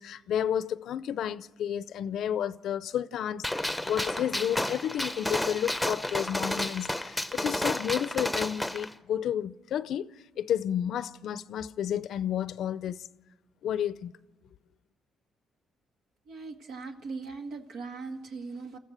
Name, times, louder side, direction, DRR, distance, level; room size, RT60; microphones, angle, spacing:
voice 1, 0.0-13.1 13.6-14.1, left 9 dB, 75° left, 0.6 m, -31 dB
Gunshot gunfire, 3.4-8.9, left 1 dB, 5° left, 0.8 m, -31 dB
voice 2, 16.3-18.8, right 4 dB, 75° right, 1.9 m, -39 dB
29.0 x 14.5 x 6.5 m
cardioid pair, 90°, 0 cm